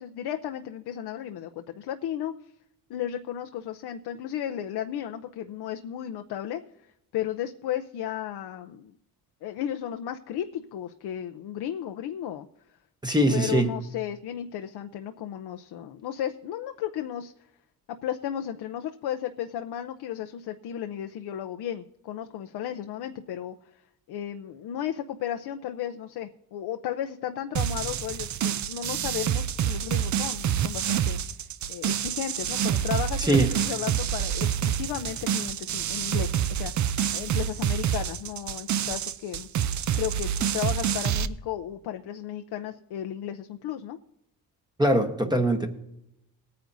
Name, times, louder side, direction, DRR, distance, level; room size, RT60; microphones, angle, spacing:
voice 1, 0.0-2.3 2.9-6.6 7.1-8.9 9.4-12.5 13.3-17.3 18.0-23.5 24.1-31.2 31.7-36.9 37.1-39.5 39.9-44.0, left 10 dB, 75° left, 6 dB, 0.7 m, -34 dB
voice 2, 13.0-13.7 33.2-33.5 44.8-45.7, right 1 dB, 10° right, 4 dB, 1.2 m, -22 dB
sound 1, 27.6-41.3, right 9 dB, 45° right, 0.6 m, -27 dB
19.0 x 9.4 x 2.7 m, 0.81 s
cardioid pair, 100°, 39 cm